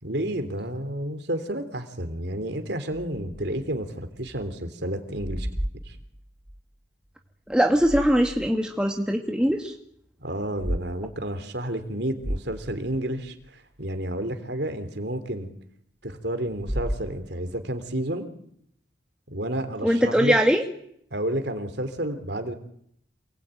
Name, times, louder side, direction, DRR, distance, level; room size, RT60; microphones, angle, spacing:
voice 1, 0.0-5.5 5.9-6.0 10.2-15.5 16.0-18.3 19.3-20.4 21.1-22.5, right 1 dB, 65° right, 9 dB, 3.2 m, -30 dB
sound 1, 2.9-4.6 4.9-6.6 7.5-8.6 9.0-9.1 10.4-10.8 11.3-11.4 11.8-11.9 12.2-13.5 16.5-17.6, equal, 20° right, 1.8 m, -34 dB
voice 2, 7.5-9.7 19.8-20.6, equal, 5° right, 2 dB, 1.8 m, -21 dB
28.0 x 20.5 x 9.1 m, 0.69 s
head